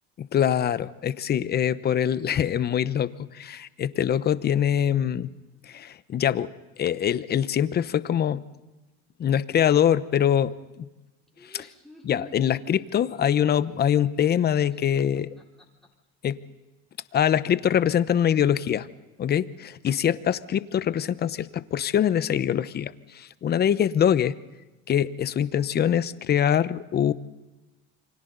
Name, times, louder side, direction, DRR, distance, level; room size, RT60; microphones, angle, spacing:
voice 1, 0.2-5.3 5.6-8.4 9.2-10.9 11.4-11.7 12.0-15.3 16.2-16.4 17.1-18.9 19.2-24.4 24.9-27.1, left 9 dB, 30° left, 15 dB, 0.9 m, -24 dB
Laughter, 11.3-15.9, equal, ahead, 4.0 m, -49 dB
28.5 x 24.5 x 4.0 m, 1.1 s
supercardioid pair, 120°, 31 cm